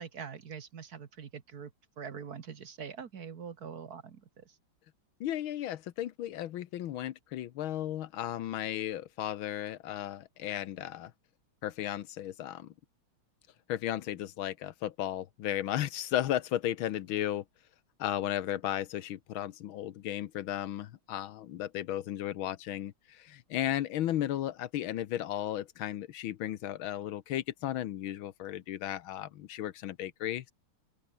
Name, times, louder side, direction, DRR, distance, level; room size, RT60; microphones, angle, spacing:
voice 1, 0.0-1.7 2.0-4.2, right 6 dB, 50° right, 1.7 m, -43 dB
voice 2, 5.2-11.1 11.6-12.7 13.7-17.4 18.0-30.5, left 12 dB, 75° left, 1.7 m, -35 dB
omnidirectional pair, 2.3 m